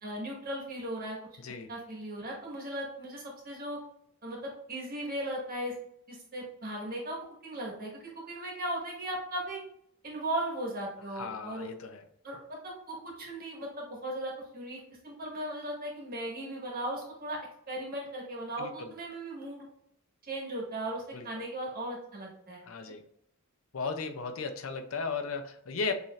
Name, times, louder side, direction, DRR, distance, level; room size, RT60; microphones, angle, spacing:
voice 1, 0.0-1.2 1.7-3.8 4.2-5.7 6.1-9.6 10.0-11.7 12.2-17.4 17.7-19.6 20.2-22.6, right 1 dB, 45° right, -2 dB, 1.7 m, -37 dB
voice 2, 11.2-12.0 18.6-18.9 21.1-21.2 22.7-23.0 23.7-25.9, left 4 dB, 80° left, 7 dB, 0.6 m, -35 dB
6.6 x 3.2 x 2.4 m, 0.71 s
head